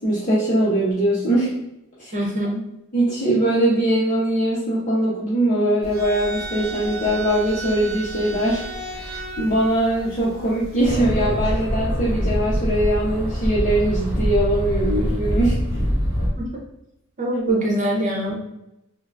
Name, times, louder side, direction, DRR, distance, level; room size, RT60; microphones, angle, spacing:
voice 1, 0.0-1.5 2.0-2.1 2.9-8.6 8.9-15.6, right 1 dB, 40° left, -9 dB, 0.7 m, -21 dB
voice 2, 2.1-2.6 16.3-16.5 17.2-18.3, right 1 dB, 40° right, -3 dB, 0.8 m, -23 dB
sound 1, 5.8-10.9, right 2 dB, 85° right, 0.6 m, -34 dB
sound 2, 10.8-16.3, equal, 15° right, 0.9 m, -23 dB
3.6 x 2.1 x 2.4 m, 0.86 s
head